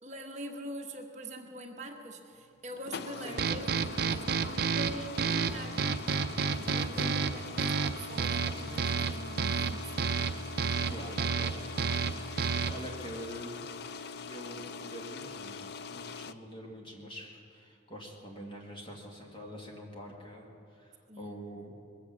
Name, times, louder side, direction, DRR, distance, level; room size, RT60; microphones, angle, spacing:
voice 1, 0.0-6.0 6.5-9.9 21.1-21.4, right 1 dB, 35° right, 2 dB, 1.2 m, -43 dB
sound 1, 2.7-16.3, left 5 dB, 55° left, 0.4 m, -43 dB
sound 2, 3.4-12.9, right 5 dB, 50° right, 0.4 m, -31 dB
voice 2, 10.9-11.8 12.7-13.7 14.3-21.8, equal, 25° left, 0 dB, 2.1 m, -45 dB
20.5 x 8.4 x 7.3 m, 2.4 s
head